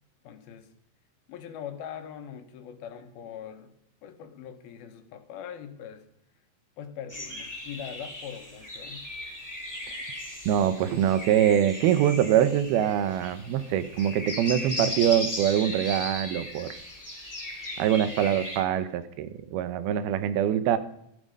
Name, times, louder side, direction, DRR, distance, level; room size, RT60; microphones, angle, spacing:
voice 1, 0.2-0.7 1.3-3.7 4.0-6.1 6.8-9.1, left 8 dB, 85° left, 7 dB, 3.2 m, -42 dB
sound 1, 7.1-18.6, left 1 dB, 5° left, 3.3 m, -37 dB
voice 2, 10.5-16.8 17.8-20.8, right 10 dB, 85° right, 13 dB, 2.8 m, -24 dB
15.0 x 12.5 x 5.4 m, 0.76 s
omnidirectional pair, 4.3 m